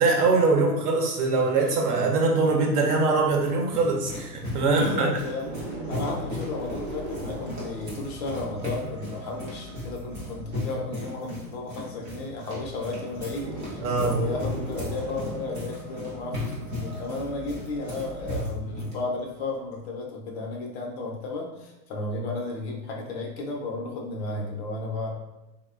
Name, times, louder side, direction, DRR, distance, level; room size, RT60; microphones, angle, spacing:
voice 1, 0.0-5.1 13.8-14.2, right 3 dB, 65° right, 1 dB, 0.8 m, -22 dB
sound 1, 3.1-19.0, left 1 dB, 15° right, 0.3 m, -36 dB
voice 2, 4.4-25.1, left 2 dB, 45° left, 0 dB, 0.5 m, -33 dB
sound 2, 5.3-19.9, right 1 dB, 35° right, 0.8 m, -40 dB
2.9 x 2.1 x 2.4 m, 1.0 s
hypercardioid pair, 125°, 49 cm